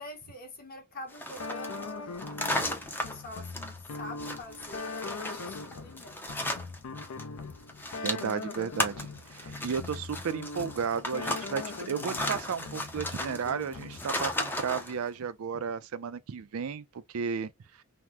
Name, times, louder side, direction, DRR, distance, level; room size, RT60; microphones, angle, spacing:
voice 1, 0.0-6.5, left 2 dB, 45° left, 1.0 m, -46 dB
sound 1, 1.1-7.2 7.5-14.9, left 1 dB, 10° left, 0.5 m, -35 dB
sound 2, 1.4-14.3, left 3 dB, 80° left, 0.5 m, -41 dB
voice 2, 8.0-17.5, right 6 dB, 80° right, 0.4 m, -34 dB
2.9 x 2.0 x 3.4 m
head